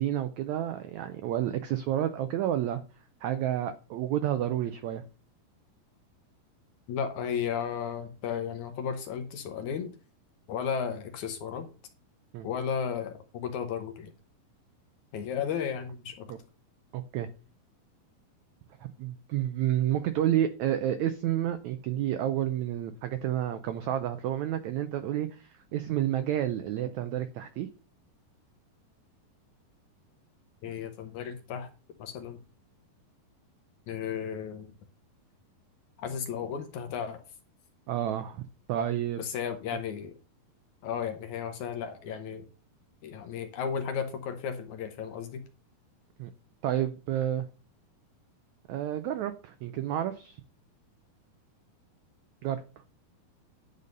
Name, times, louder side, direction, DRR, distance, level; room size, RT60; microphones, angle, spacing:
voice 1, 0.0-2.8 3.2-5.0 12.3-12.5 16.3-16.4 16.9-17.3 19.0-27.7 37.9-39.2 46.2-46.3 46.6-47.5 48.7-50.4 52.4-52.6, right 11 dB, 85° right, 10 dB, 1.6 m, -30 dB
voice 2, 6.9-10.0 10.5-11.7 12.4-14.1 15.1-16.3 30.6-31.7 32.0-32.4 33.9-34.7 36.0-37.2 39.2-40.1 40.8-42.5 43.0-45.4, left 7 dB, 70° left, 7 dB, 2.0 m, -34 dB
10.5 x 4.1 x 6.5 m, 0.35 s
omnidirectional pair, 4.1 m